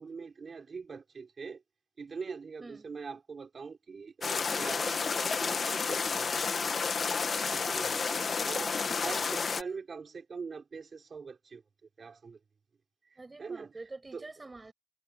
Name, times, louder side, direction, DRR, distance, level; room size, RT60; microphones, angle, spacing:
voice 1, 0.0-1.6 2.0-6.8 7.5-8.0 8.4-11.6 12.0-12.4 13.0-13.7 14.1-14.2, right 5 dB, 70° right, 5.0 m, -43 dB
sound 1, 4.2-9.6, left 5 dB, 75° left, 1.7 m, -31 dB
voice 2, 7.9-9.2 13.2-14.7, right 3 dB, 35° right, 7.5 m, -47 dB
wide cardioid pair, 75°, 0 cm